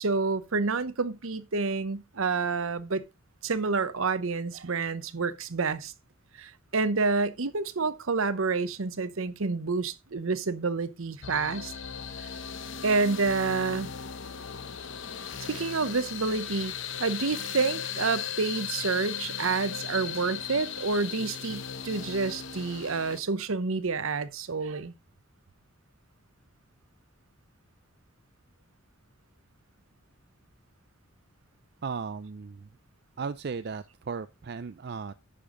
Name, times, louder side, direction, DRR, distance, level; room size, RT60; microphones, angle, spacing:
voice 1, 0.0-3.0 3.4-5.9 6.4-11.7 12.2-12.3 12.8-13.9 15.5-24.9, right 4 dB, 70° right, 0.8 m, -29 dB
sound 1, 11.2-23.2, left 8 dB, 60° left, 0.9 m, -37 dB
voice 2, 31.8-32.7 33.2-35.1, right 5 dB, 50° right, 0.4 m, -36 dB
10.0 x 6.9 x 3.7 m
head